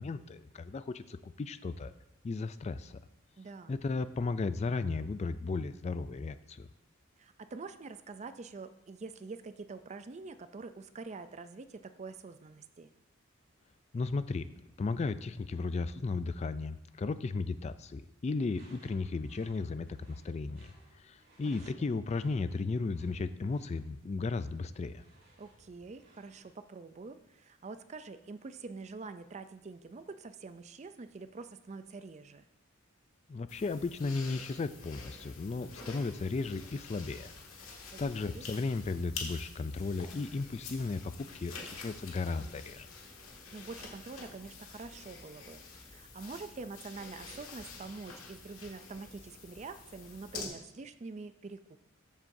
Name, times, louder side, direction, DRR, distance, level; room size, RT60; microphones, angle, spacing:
voice 1, 0.0-1.9 2.2-3.0 3.7-6.7 13.9-14.5 14.8-20.7 21.0-25.0 33.3-37.3 38.0-42.9, left 3 dB, 30° left, 13 dB, 0.3 m, -35 dB
voice 2, 3.4-3.8 7.2-12.9 25.4-32.4 37.9-38.5 43.5-51.8, right 4 dB, 35° right, 11 dB, 0.4 m, -46 dB
Door / Screech, 18.3-26.6, right 1 dB, 50° right, 3.6 m, -63 dB
sound 1, 33.5-50.4, left 4 dB, 80° left, 1.8 m, -48 dB
14.0 x 7.4 x 2.7 m, 0.90 s
head